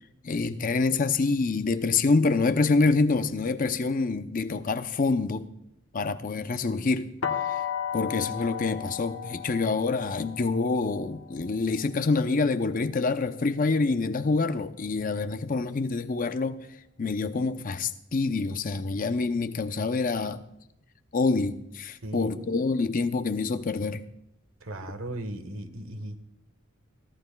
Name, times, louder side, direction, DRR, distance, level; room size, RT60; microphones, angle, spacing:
voice 1, 0.2-5.5 5.9-7.1 7.9-16.6 17.0-20.4 21.1-24.0, left 3 dB, 40° left, 0.6 m, -26 dB
sound 1, 7.2-13.1, left 8 dB, 70° left, 1.2 m, -35 dB
voice 2, 22.0-22.5 24.6-26.2, right 1 dB, 85° right, 1.3 m, -37 dB
23.5 x 14.5 x 2.2 m
head